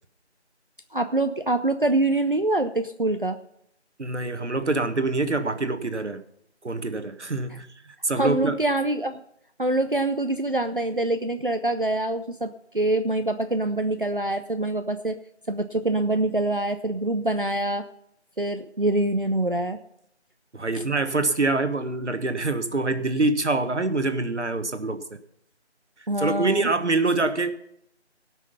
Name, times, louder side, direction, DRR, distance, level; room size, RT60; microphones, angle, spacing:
voice 1, 0.9-3.4 8.1-9.2 9.6-15.2 15.5-17.8 18.4-19.8 20.7-20.8 26.1-26.7, right 2 dB, 50° right, 7 dB, 0.6 m, -25 dB
voice 2, 4.0-6.2 6.6-7.7 8.0-8.6 20.5-25.0 26.2-27.6, right 3 dB, 80° right, 9 dB, 1.4 m, -25 dB
17.5 x 6.3 x 5.6 m, 0.74 s
figure-of-eight pair, 180°, 35 cm